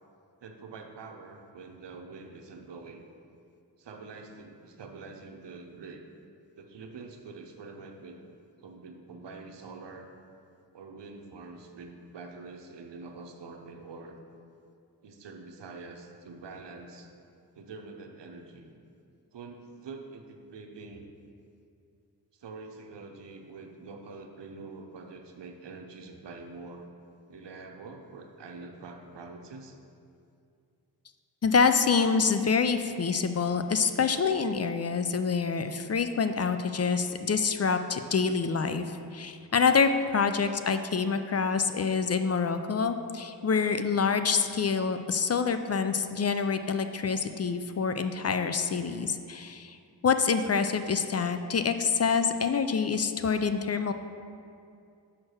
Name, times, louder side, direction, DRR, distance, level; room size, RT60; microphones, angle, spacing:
voice 1, 0.4-3.0 3.8-6.1 6.6-8.2 8.6-10.1 10.7-14.2 15.0-17.1 17.5-18.7 19.3-21.1 22.3-26.9 27.3-29.8, right 3 dB, 85° right, 4 dB, 0.8 m, -45 dB
voice 2, 31.4-49.8 50.0-53.9, left 5 dB, 40° left, 9 dB, 0.4 m, -26 dB
5.8 x 4.5 x 6.3 m, 2.4 s
cardioid pair, 60°, 41 cm